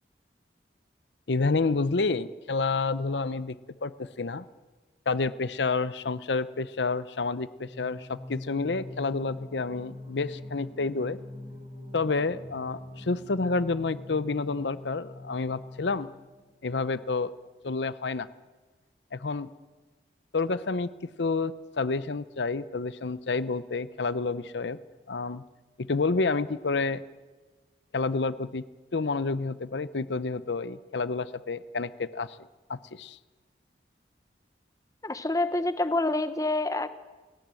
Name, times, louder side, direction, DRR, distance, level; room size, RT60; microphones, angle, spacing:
voice 1, 1.3-3.6 3.8-4.4 5.1-11.2 11.9-16.1 16.6-17.3 17.6-18.3 19.1-19.5 20.3-20.9 21.2-24.8 25.1-25.4 25.8-27.0 27.9-28.7 28.9-32.4 32.7-33.2, left 3 dB, 85° left, 16 dB, 0.7 m, -29 dB
Singing, 7.6-16.5, left 1 dB, 35° right, 6.1 m, -44 dB
voice 2, 35.0-36.9, left 2 dB, 20° left, 12 dB, 0.9 m, -27 dB
28.5 x 18.0 x 7.7 m, 1.3 s
head